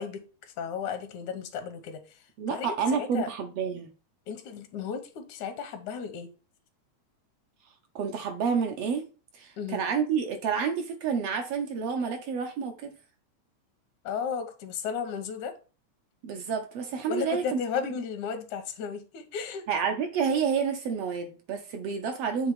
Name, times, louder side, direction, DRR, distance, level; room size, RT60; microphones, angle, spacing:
voice 1, 0.0-2.2 2.5-3.3 4.3-6.3 9.6-9.8 14.0-15.5 17.1-19.7, left 6 dB, 80° left, 2.4 m, -34 dB
voice 2, 2.4-3.9 7.9-9.1 9.3-12.9 16.2-17.6 19.7-22.5, right 6 dB, 70° right, 1.7 m, -29 dB
7.9 x 3.4 x 5.0 m
omnidirectional pair, 3.3 m